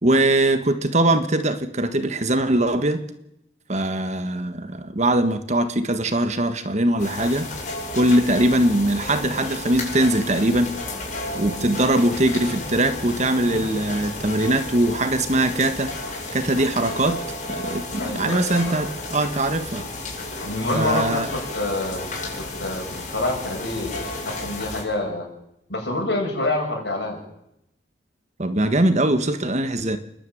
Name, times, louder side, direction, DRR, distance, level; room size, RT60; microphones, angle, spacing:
voice 1, 0.0-3.0 3.7-7.5 7.9-10.7 11.3-15.9 16.3-17.2 17.5-19.8 20.7-21.3 28.4-30.0, right 1 dB, 40° right, 9 dB, 1.5 m, -21 dB
sound 1, 7.0-24.8, left 2 dB, 45° left, 7.4 m, -32 dB
voice 2, 18.0-18.9 20.4-22.1 22.4-25.3 25.7-27.2, left 2 dB, 80° left, 0 dB, 7.3 m, -27 dB
28.0 x 11.5 x 9.2 m, 0.83 s
head